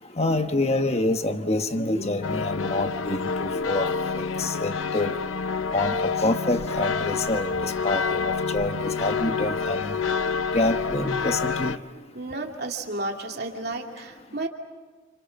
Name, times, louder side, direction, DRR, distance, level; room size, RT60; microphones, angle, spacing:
voice 1, 0.2-3.9 4.2-5.1 5.7-10.0 10.5-11.8, left 2 dB, 30° left, 7 dB, 1.3 m, -27 dB
sound 1, 2.2-11.8, left 5 dB, 80° left, 0.7 m, -28 dB
voice 2, 12.1-14.5, right 2 dB, 50° right, 2 dB, 2.8 m, -32 dB
30.0 x 28.5 x 6.0 m, 1.4 s
head